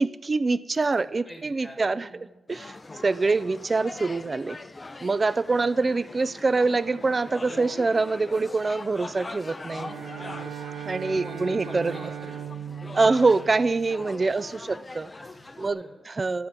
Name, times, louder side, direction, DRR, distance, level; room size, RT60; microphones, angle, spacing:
voice 1, 0.0-2.1 2.5-2.8 3.0-4.6 5.0-9.9 10.9-11.9 12.9-15.1 15.6-16.5, right 3 dB, 30° right, 17 dB, 0.3 m, -25 dB
voice 2, 1.0-2.3 10.1-10.5 11.2-12.3 12.9-13.0 14.5-14.6 15.2-15.9, right 1 dB, 10° right, 2 dB, 1.7 m, -45 dB
sound 1, 2.5-15.7, left 3 dB, 25° left, 0.5 m, -42 dB
Bowed string instrument, 9.7-14.4, right 9 dB, 80° right, 0.9 m, -38 dB
12.0 x 5.9 x 9.2 m, 1.1 s
wide cardioid pair, 120°, 0 cm